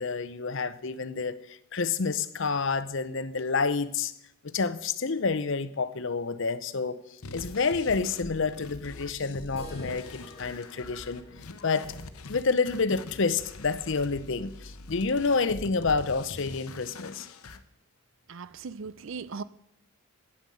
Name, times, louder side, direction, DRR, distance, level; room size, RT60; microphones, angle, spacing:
voice 1, 0.0-4.1 4.4-11.3 11.6-11.9 12.3-17.3, left 4 dB, 55° left, 0.7 m, -29 dB
sound 1, 7.2-17.6, left 3 dB, 80° left, 0.9 m, -44 dB
sound 2, 9.6-15.4 15.7-15.8 16.1-16.2 16.7-16.8 17.7-17.8, equal, 25° left, 2.1 m, -52 dB
voice 2, 18.3-19.4, right 5 dB, 60° right, 0.5 m, -38 dB
9.1 x 8.9 x 7.8 m
head